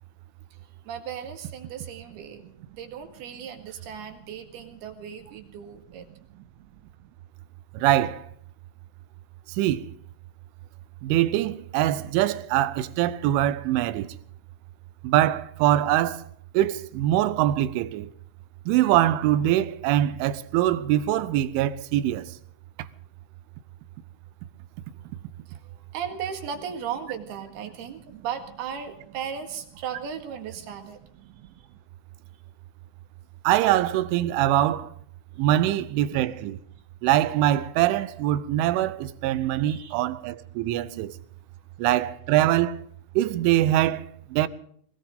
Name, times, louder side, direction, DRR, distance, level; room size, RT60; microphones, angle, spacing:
voice 1, 0.5-6.1 25.5-31.0 31.4-31.7 35.4-35.5 39.6-39.9 41.5-41.7, right 8 dB, 65° right, 3.5 m, -37 dB
voice 2, 7.7-8.3 9.6-9.8 11.0-14.2 15.0-16.2 16.5-18.1 18.7-22.3 33.4-34.9 35.4-36.6 37.0-41.1 41.8-42.8 43.2-44.1 44.3-44.5, right 13 dB, 90° right, 3.3 m, -23 dB
20.5 x 19.0 x 3.7 m
omnidirectional pair, 5.4 m